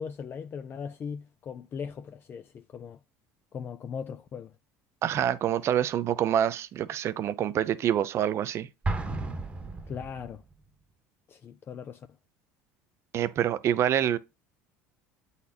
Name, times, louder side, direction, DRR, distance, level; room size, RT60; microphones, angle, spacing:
voice 1, 0.0-3.0 3.5-4.5 9.9-10.4 11.3-12.1, left 6 dB, 35° left, 0.5 m, -39 dB
voice 2, 5.0-8.7 13.1-14.2, right 10 dB, 50° right, 0.6 m, -26 dB
Explosion, 8.8-10.5, right 2 dB, 20° right, 1.2 m, -33 dB
8.2 x 4.1 x 2.8 m
supercardioid pair, 95°, 6 cm